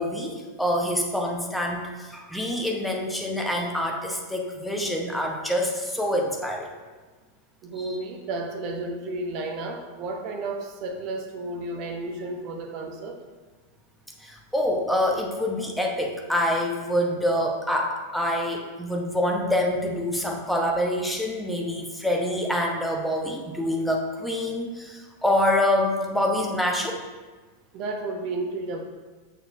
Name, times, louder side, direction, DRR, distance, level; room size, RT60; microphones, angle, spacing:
voice 1, 0.0-6.7 7.8-8.0 14.2-27.0, left 1 dB, ahead, 0 dB, 0.8 m, -26 dB
voice 2, 7.6-13.2 27.7-28.8, right 2 dB, 40° right, 3 dB, 0.7 m, -32 dB
6.6 x 6.2 x 2.5 m, 1.3 s
figure-of-eight pair, 90°, 0 cm